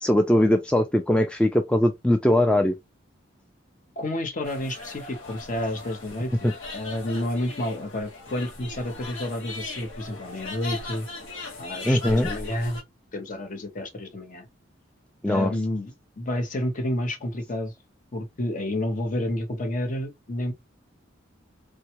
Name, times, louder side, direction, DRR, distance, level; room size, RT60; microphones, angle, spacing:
voice 1, 0.0-2.7 6.4-6.5 11.8-12.3 15.2-15.5, left 1 dB, 5° left, 0.3 m, -21 dB
voice 2, 4.0-11.1 11.6-12.8 13.1-14.5 15.3-17.7 18.1-20.5, left 1 dB, 45° left, 0.8 m, -30 dB
sound 1, 4.4-12.8, left 3 dB, 85° left, 1.2 m, -38 dB
3.3 x 2.3 x 2.8 m
head